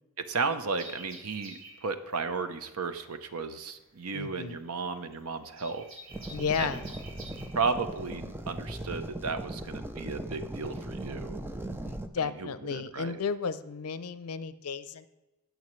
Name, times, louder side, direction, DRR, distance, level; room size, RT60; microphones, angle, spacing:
voice 1, 0.3-5.8 6.6-6.8 7.5-11.4 12.2-13.2, right 4 dB, 80° right, 9 dB, 0.9 m, -34 dB
sound 1, 0.7-9.0, right 2 dB, 60° right, 2.0 m, -49 dB
voice 2, 4.1-4.6 6.3-6.8 11.8-15.1, left 6 dB, 80° left, 14 dB, 0.6 m, -33 dB
sound 2, 6.1-12.1, right 1 dB, 10° right, 0.5 m, -39 dB
18.5 x 6.4 x 3.2 m, 1.1 s
head